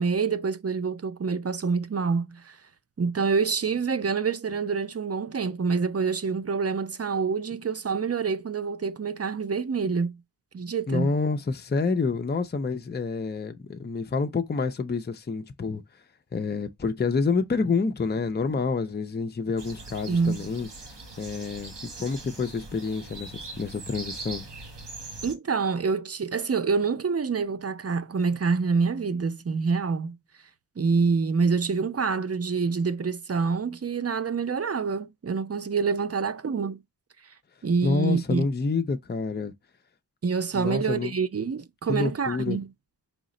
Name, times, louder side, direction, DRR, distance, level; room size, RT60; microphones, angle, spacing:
voice 1, 0.0-2.6 3.0-10.2 10.5-11.1 20.1-20.5 25.2-30.2 30.8-36.8 37.6-38.5 40.2-42.7, right 5 dB, 40° right, 0.4 m, -26 dB
voice 2, 10.9-15.8 16.3-20.7 21.2-21.7 22.0-24.5 37.8-39.5 40.5-41.1 41.9-42.6, left 4 dB, 25° left, 0.5 m, -28 dB
sound 1, 19.6-25.3, right 3 dB, 80° right, 1.1 m, -41 dB
4.8 x 2.1 x 3.7 m
wide cardioid pair, 60°, 41 cm